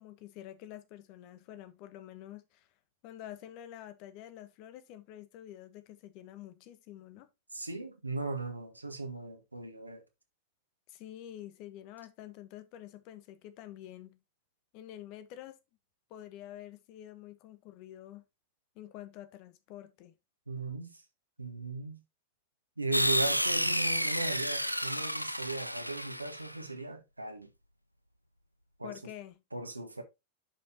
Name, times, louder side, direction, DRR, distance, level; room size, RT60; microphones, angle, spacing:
voice 1, 0.0-2.7 3.0-7.3 10.9-14.2 14.7-15.6 16.1-18.2 18.7-20.1 28.8-29.4, left 12 dB, 45° left, 1.1 m, -48 dB
voice 2, 7.5-10.0 20.5-21.0 21.4-22.0 22.8-27.5 28.8-29.0 29.5-30.0, right 3 dB, 85° right, 1.4 m, -37 dB
sound 1, 22.9-26.6, equal, 90° left, 0.4 m, -31 dB
10.5 x 5.4 x 2.8 m
figure-of-eight pair, 90°, 0 cm